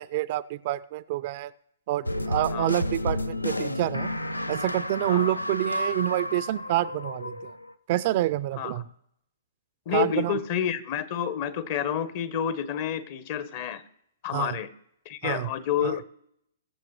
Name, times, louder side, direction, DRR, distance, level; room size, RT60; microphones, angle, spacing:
voice 1, 0.0-1.5 1.9-4.1 4.5-7.5 7.9-8.9 9.9-10.4 14.3-14.5 15.2-15.5 15.8-15.9, right 15 dB, 40° right, 17 dB, 0.4 m, -27 dB
sound 1, 2.1-7.7, left 1 dB, 90° left, 0.5 m, -31 dB
voice 2, 5.0-5.4 8.6-8.8 9.9-13.8 14.2-14.7 15.1-16.0, left 9 dB, 40° left, 15 dB, 0.8 m, -29 dB
22.0 x 7.3 x 3.1 m, 0.73 s
figure-of-eight pair, 120°, 0 cm